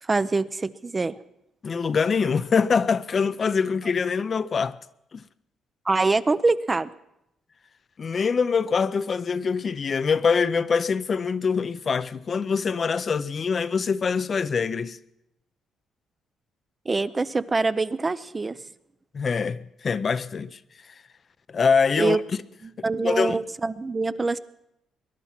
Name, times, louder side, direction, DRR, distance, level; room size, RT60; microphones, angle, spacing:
voice 1, 0.0-1.2 5.9-6.9 16.9-18.6 22.0-22.2 22.6-24.4, right 3 dB, 25° right, 0.5 m, -24 dB
voice 2, 1.6-4.8 5.1-5.2 8.0-15.0 19.1-20.6 21.5-22.2 23.0-23.4, left 5 dB, 45° left, 0.6 m, -24 dB
21.5 x 11.0 x 5.9 m
cardioid pair, 90°, 0 cm